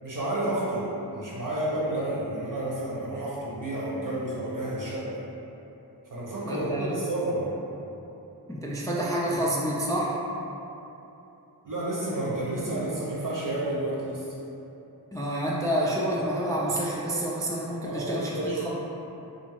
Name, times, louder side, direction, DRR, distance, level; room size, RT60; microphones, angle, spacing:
voice 1, 0.0-5.1 6.1-7.5 11.6-14.3 17.8-18.6, right 1 dB, 50° right, -7 dB, 0.9 m, -30 dB
voice 2, 6.4-6.9 8.5-10.2 15.1-18.7, right 1 dB, 10° left, -5 dB, 0.3 m, -28 dB
2.6 x 2.5 x 3.0 m, 3.0 s
cardioid pair, 45°, 40 cm